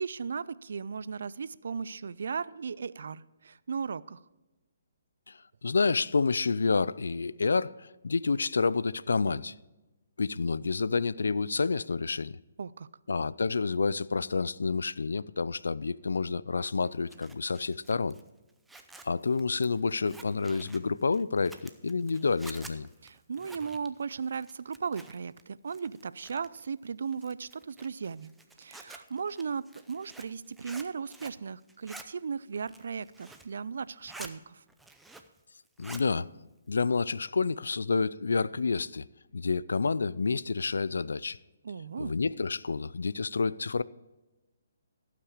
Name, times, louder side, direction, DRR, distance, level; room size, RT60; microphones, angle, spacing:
voice 1, 0.0-4.2 12.6-12.9 23.0-28.3 28.6-34.6 41.6-42.1, right 6 dB, 65° right, 0.4 m, -36 dB
voice 2, 5.3-9.5 10.2-12.4 13.1-18.2 19.0-22.9 35.8-39.1 39.3-41.4 42.0-43.8, left 4 dB, 80° left, 0.3 m, -29 dB
Zipper (clothing), 16.8-25.4 25.7-26.7 27.1-31.4 31.7-32.1 32.5-33.5 33.9-34.3 34.7-35.4 35.7-36.1, right 2 dB, 5° right, 0.6 m, -50 dB
16.5 x 5.9 x 4.9 m
hypercardioid pair, 145°, 0 cm